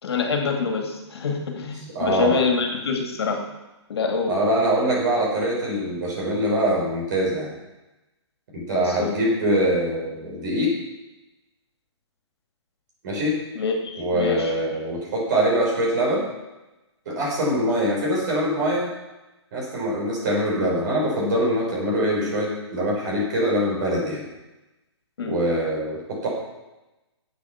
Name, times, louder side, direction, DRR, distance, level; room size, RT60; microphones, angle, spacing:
voice 1, 0.0-3.5 3.9-4.3 8.7-9.2 13.5-14.5 25.2-25.4, left 5 dB, 60° left, 3 dB, 2.4 m, -25 dB
voice 2, 1.9-2.5 4.3-7.5 8.5-10.7 13.0-13.3 14.0-16.3 17.1-18.9 19.5-24.2 25.3-26.0 26.2-26.3, right 1 dB, 40° right, -4 dB, 5.5 m, -23 dB
12.5 x 8.5 x 5.9 m, 1.0 s
hypercardioid pair, 170°, 15 cm